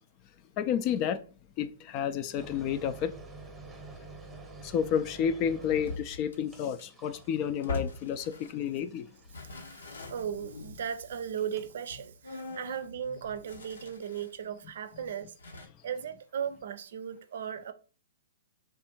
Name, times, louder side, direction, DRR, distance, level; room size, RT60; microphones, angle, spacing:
voice 1, 0.6-1.2 1.6-3.1 4.6-9.1, left 8 dB, 35° left, 0.4 m, -30 dB
sound 1, 2.4-10.0 11.4-11.7, right 3 dB, 10° right, 0.9 m, -49 dB
sound 2, 5.6-8.8 9.2-14.4 14.8-14.9 15.4-15.7, left 3 dB, 90° left, 0.9 m, -42 dB
voice 2, 9.3-17.7, right 8 dB, 70° right, 0.5 m, -37 dB
3.5 x 2.6 x 4.4 m
hypercardioid pair, 135°, 0 cm